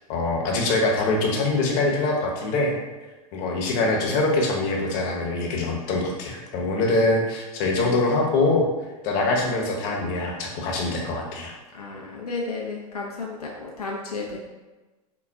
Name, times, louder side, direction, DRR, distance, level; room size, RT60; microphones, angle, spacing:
voice 1, 0.1-2.7 3.3-8.7 9.0-11.5, left 2 dB, 45° left, 0 dB, 0.9 m, -23 dB
voice 2, 11.7-14.4, left 3 dB, 90° left, -2 dB, 0.6 m, -33 dB
4.0 x 2.2 x 3.4 m, 1.2 s
hypercardioid pair, 100°, 19 cm